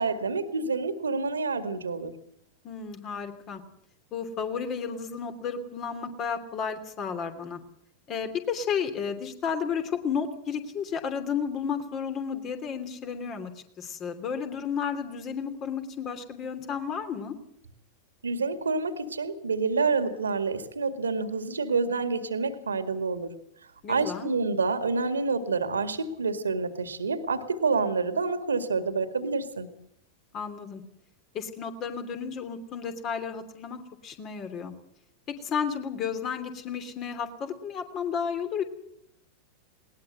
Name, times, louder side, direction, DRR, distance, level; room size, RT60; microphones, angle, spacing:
voice 1, 0.0-2.1 18.2-23.3 23.9-29.7, right 4 dB, 75° right, 10 dB, 2.1 m, -28 dB
voice 2, 2.6-3.6 4.1-7.6 8.1-13.5 13.8-17.3 23.8-24.3 30.3-30.8 31.3-34.7 35.4-38.6, left 6 dB, 35° left, 8 dB, 2.9 m, -32 dB
20.5 x 19.5 x 7.9 m, 0.73 s
figure-of-eight pair, 90°, 0 cm